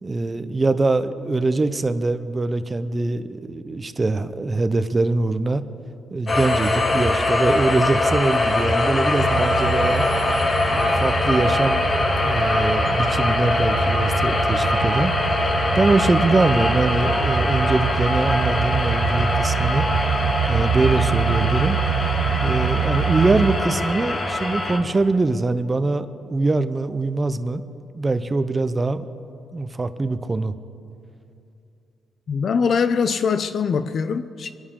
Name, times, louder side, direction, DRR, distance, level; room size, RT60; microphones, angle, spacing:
voice 1, 0.0-5.6 6.1-10.1 10.7-11.8 12.2-15.1 15.7-19.9 20.5-21.8 22.4-27.6 27.9-29.1 29.5-30.5, right 3 dB, 25° right, 0.7 m, -23 dB
sound 1, 6.3-24.8, left 2 dB, 35° left, 1.9 m, -22 dB
sound 2, 8.7-11.2 11.8-13.5, right 4 dB, 60° right, 1.5 m, -38 dB
sound 3, 9.2-23.6, right 9 dB, 80° right, 0.7 m, -26 dB
voice 2, 32.3-34.5, left 6 dB, 50° left, 0.5 m, -22 dB
23.5 x 11.5 x 3.7 m
cardioid pair, 105°, 0 cm